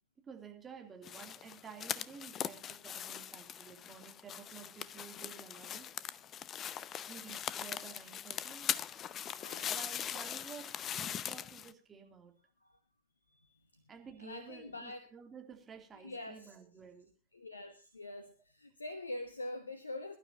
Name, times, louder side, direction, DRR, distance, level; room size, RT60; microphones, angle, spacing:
voice 1, 0.2-5.9 7.1-8.8 9.7-12.3 13.9-17.1, right 6 dB, 20° right, 3 dB, 3.0 m, -52 dB
sound 1, 1.0-11.7, left 9 dB, 30° left, 0.7 m, -41 dB
voice 2, 9.2-9.9 12.6-12.8 13.3-13.9 14.2-15.1 16.0-16.6 17.3-20.2, left 2 dB, 80° left, 10 dB, 1.2 m, -45 dB
23.0 x 12.0 x 2.8 m, 0.31 s
figure-of-eight pair, 90°, 0 cm